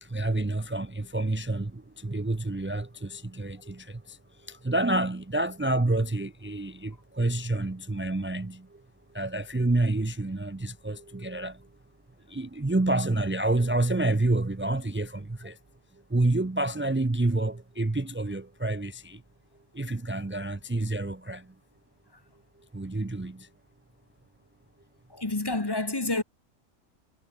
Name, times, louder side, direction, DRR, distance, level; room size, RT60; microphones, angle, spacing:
voice 1, 0.0-4.2 4.5-8.7 9.1-11.6 12.3-15.6 16.1-19.2 19.7-21.4 22.7-23.5, right 2 dB, 20° right, 0.3 m, -28 dB
voice 2, 25.1-26.2, left 2 dB, 20° left, 1.2 m, -28 dB
omnidirectional pair, 1.4 m